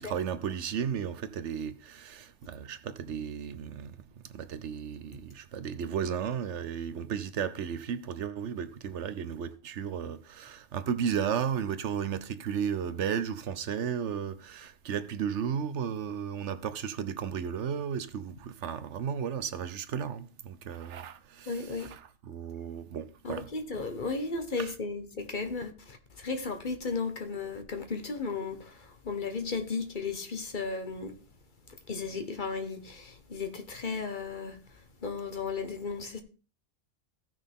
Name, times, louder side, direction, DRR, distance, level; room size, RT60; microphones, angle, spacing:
voice 1, 0.0-4.0 4.3-22.0 22.3-23.5 24.6-24.7, right 8 dB, 65° right, 1.0 m, -34 dB
voice 2, 21.5-21.9 23.2-31.1 31.9-36.2, left 4 dB, 40° left, 1.4 m, -35 dB
16.0 x 6.1 x 3.6 m
omnidirectional pair, 1.3 m